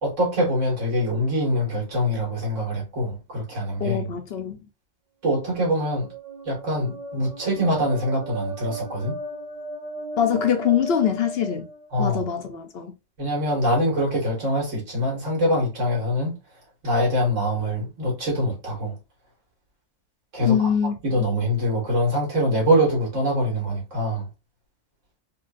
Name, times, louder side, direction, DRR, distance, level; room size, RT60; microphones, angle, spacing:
voice 1, 0.0-4.0 5.2-6.1 6.4-9.2 11.9-12.2 13.2-16.4 16.8-19.0 20.3-20.7 21.0-24.3, equal, 75° right, 2.3 m, -24 dB
voice 2, 3.8-4.6 10.2-11.7 12.0-12.9 20.4-20.9, left 8 dB, 60° left, 0.8 m, -23 dB
sound 1, 5.5-12.3, right 2 dB, 35° right, 0.8 m, -36 dB
4.5 x 2.7 x 2.5 m
omnidirectional pair, 1.3 m